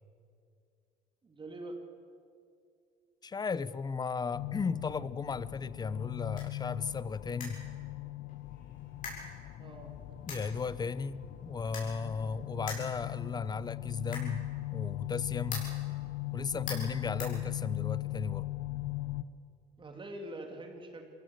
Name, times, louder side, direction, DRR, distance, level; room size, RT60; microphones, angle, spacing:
voice 1, 1.2-1.8 9.6-9.9 19.8-21.0, right 1 dB, 30° right, 4 dB, 2.7 m, -44 dB
voice 2, 3.2-7.6 10.3-15.7 16.3-18.5 18.8-18.9, left 5 dB, 25° left, 18 dB, 0.6 m, -36 dB
sound 1, 4.3-19.2, left 18 dB, 75° left, 0.8 m, -39 dB
sound 2, 6.2-18.1, left 4 dB, 55° left, 7.9 m, -48 dB
23.5 x 17.0 x 7.9 m, 2.5 s
cardioid pair, 110°, 17 cm